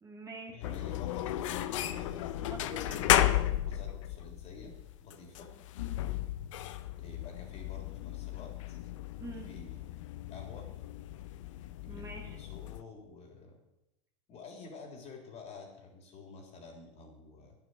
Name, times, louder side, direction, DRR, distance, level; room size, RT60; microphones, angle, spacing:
voice 1, 0.0-0.8 2.4-3.2 9.2-9.5 11.9-12.4, right 2 dB, 20° right, 1 dB, 2.1 m, -45 dB
voice 2, 0.5-2.3 3.0-4.7 5.0-5.6 7.0-8.8 9.3-10.0 10.3-10.7 11.8-13.6 14.3-17.5, left 4 dB, 40° left, 1 dB, 3.5 m, -50 dB
sound 1, 0.6-12.8, left 13 dB, 70° left, 0.7 m, -34 dB
8.9 x 7.3 x 8.4 m, 0.92 s
hypercardioid pair, 95°, 17 cm